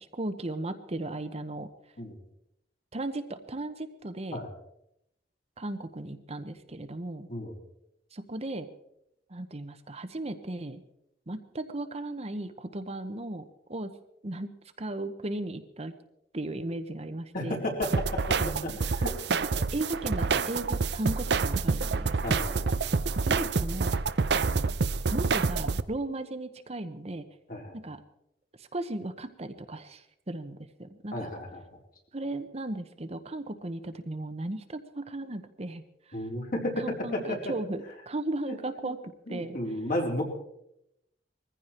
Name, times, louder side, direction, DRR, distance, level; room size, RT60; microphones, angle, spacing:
voice 1, 0.0-1.7 2.9-4.4 5.6-7.3 8.1-8.7 9.3-10.8 11.3-13.4 13.7-13.9 14.2-14.5 14.8-15.9 16.3-17.6 18.4-18.8 19.4-22.4 23.3-24.0 24.3-24.8 25.1-27.3 27.8-28.0 28.6-31.3 32.1-35.8 36.1-36.3 36.8-39.6, right 2 dB, 35° right, 8 dB, 1.0 m, -36 dB
voice 2, 17.3-19.2 22.2-23.0 27.5-27.8 31.1-31.6 36.1-36.8 37.1-37.5 38.5-38.6 39.3-40.2, left 1 dB, 50° left, 0 dB, 4.0 m, -33 dB
sound 1, 17.8-25.8, right 4 dB, 70° right, 0.6 m, -27 dB
21.0 x 15.0 x 4.5 m, 0.80 s
head